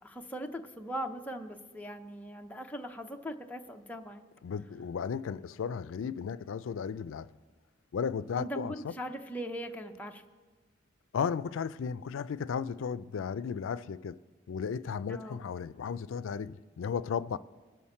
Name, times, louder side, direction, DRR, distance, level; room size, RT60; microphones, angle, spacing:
voice 1, 0.0-4.3 8.4-10.2 15.1-15.4, equal, 10° left, 0.6 m, -40 dB
voice 2, 4.4-7.3 7.9-8.9 11.1-14.2 14.5-17.4, left 6 dB, 85° left, 0.4 m, -35 dB
20.5 x 7.2 x 4.3 m
head